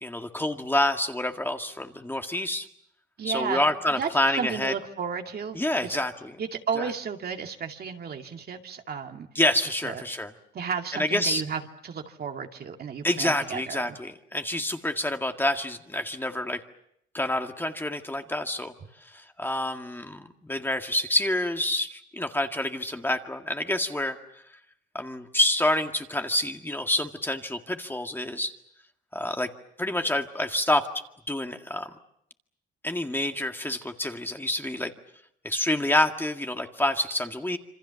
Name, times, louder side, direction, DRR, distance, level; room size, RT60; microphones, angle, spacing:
voice 1, 0.0-2.7 3.2-4.7 5.5-6.4 6.8-6.9 9.3-10.3 10.9-11.4 13.0-16.6 17.1-18.7 19.0-24.2 24.9-28.5 29.1-29.5 29.8-31.9 32.8-34.9 35.4-37.6, left 1 dB, 10° left, 5 dB, 2.0 m, -27 dB
voice 2, 3.2-4.1 4.4-6.0 6.4-9.3 9.8-10.0 10.5-14.0, right 6 dB, 50° right, 4 dB, 2.3 m, -33 dB
27.5 x 25.5 x 7.1 m, 0.75 s
cardioid pair, 90°, 20 cm